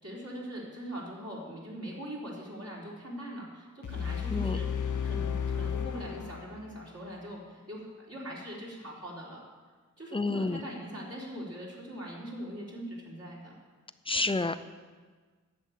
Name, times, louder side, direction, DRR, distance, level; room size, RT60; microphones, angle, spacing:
voice 1, 0.0-9.4 10.0-13.5 14.1-14.3, equal, 50° right, -5 dB, 3.8 m, -42 dB
sound 1, 3.8-6.9, left 7 dB, 75° left, 0.8 m, -33 dB
voice 2, 10.1-10.6 14.1-14.6, left 3 dB, 15° left, 11 dB, 0.5 m, -29 dB
10.5 x 7.2 x 9.3 m, 1.5 s
wide cardioid pair, 95°, 31 cm